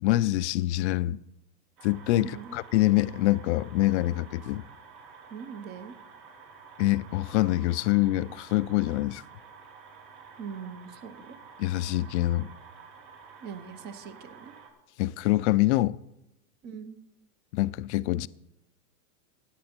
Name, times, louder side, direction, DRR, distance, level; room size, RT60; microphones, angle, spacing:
voice 1, 0.0-1.2 1.8-4.6 6.8-9.2 11.6-12.5 15.0-16.0 17.5-18.3, left 16 dB, 50° left, 0.5 m, -25 dB
sound 1, 1.8-14.7, right 5 dB, 65° right, 4.0 m, -50 dB
voice 2, 2.1-2.6 5.3-5.9 10.4-11.4 13.4-14.5 16.6-17.0, right 6 dB, 20° right, 0.6 m, -41 dB
16.5 x 9.5 x 4.4 m
supercardioid pair, 155°, 47 cm